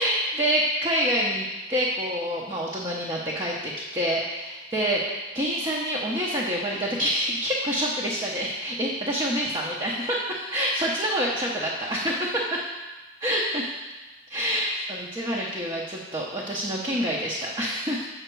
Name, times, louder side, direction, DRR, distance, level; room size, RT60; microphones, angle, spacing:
voice 1, 0.0-12.7 13.2-13.7 14.3-18.1, equal, 20° right, -4 dB, 0.7 m, -27 dB
7.8 x 5.8 x 4.5 m, 1.2 s
head